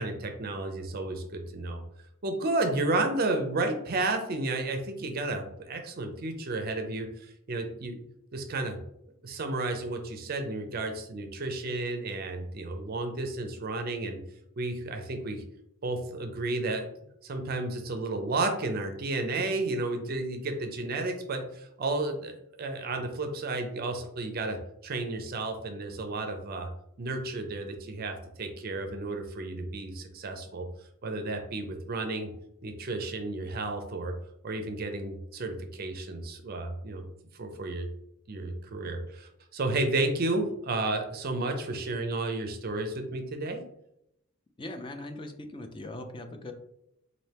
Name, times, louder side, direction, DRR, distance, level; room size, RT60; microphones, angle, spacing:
voice 1, 0.0-1.8 2.2-8.0 8.3-8.8 9.2-14.2 14.6-15.4 15.8-16.9 17.2-24.6 24.8-26.7 27.0-30.7 31.0-32.3 32.6-34.1 34.4-37.0 37.4-37.9 38.3-43.6, right 2 dB, 45° right, 6 dB, 0.5 m, -32 dB
voice 2, 44.6-46.5, left 1 dB, 25° left, 6 dB, 0.4 m, -40 dB
4.2 x 2.6 x 3.3 m, 0.79 s
head